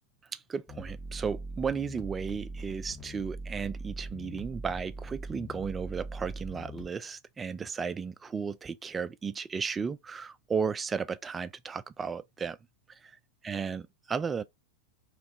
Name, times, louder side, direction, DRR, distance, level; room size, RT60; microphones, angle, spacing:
voice 1, 0.3-12.6 13.0-13.2 13.4-14.4, right 6 dB, 15° right, 0.3 m, -34 dB
sound 1, 0.7-6.9, right 2 dB, 15° left, 1.1 m, -41 dB
3.5 x 3.2 x 3.0 m
figure-of-eight pair, 90°, 0 cm